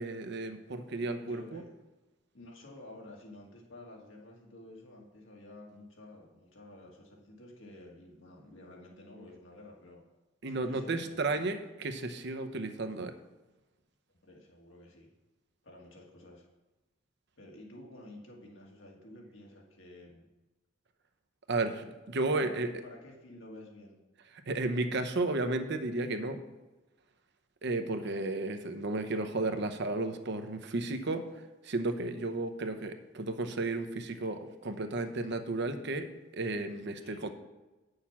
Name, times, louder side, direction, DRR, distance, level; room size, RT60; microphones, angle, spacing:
voice 1, 0.0-1.6 10.4-13.1 21.5-22.7 24.5-26.4 27.6-36.1 36.3-37.3, right 2 dB, 60° right, 8 dB, 0.8 m, -33 dB
voice 2, 1.2-1.7 2.3-10.0 10.5-11.5 14.2-15.1 15.6-16.5 17.4-20.3 22.3-24.0 28.0-28.2 37.0-37.3, left 1 dB, 70° left, -1 dB, 2.0 m, -51 dB
8.6 x 6.6 x 5.9 m, 1.1 s
head